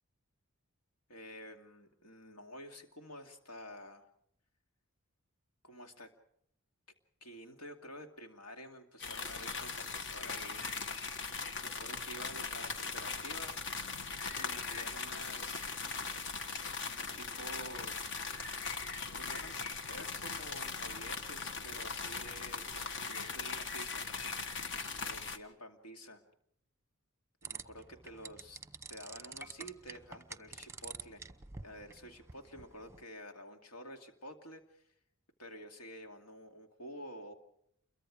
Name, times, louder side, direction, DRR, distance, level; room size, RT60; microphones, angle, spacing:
voice 1, 1.1-4.1 5.6-6.1 7.2-10.7 11.6-13.6 14.4-15.6 16.9-18.0 19.2-19.6 19.9-24.1 25.1-26.2 27.4-28.6 28.9-31.2 31.6-34.9 35.4-37.3, equal, 80° left, 4 dB, 2.4 m, -50 dB
sound 1, 9.0-25.4, left 4 dB, 60° left, 1.6 m, -40 dB
sound 2, 27.4-33.0, right 5 dB, 10° right, 0.9 m, -48 dB
29.0 x 23.0 x 4.9 m, 0.72 s
head